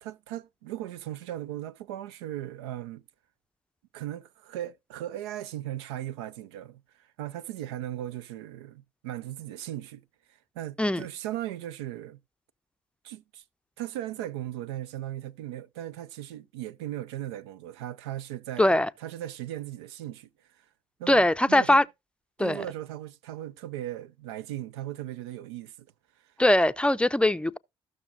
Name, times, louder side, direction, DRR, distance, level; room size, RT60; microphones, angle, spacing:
voice 1, 0.0-3.0 3.9-10.0 10.6-12.2 13.0-13.4 13.8-20.3 20.6-20.7 21.0-21.8 22.4-25.9 26.3-26.4, right 13 dB, 85° right, 0.4 m, -37 dB
voice 2, 18.6-18.9 21.1-21.8 22.4-22.6 26.4-27.6, left 1 dB, 10° left, 0.4 m, -21 dB
15.0 x 6.1 x 2.5 m
hypercardioid pair, 50°, 14 cm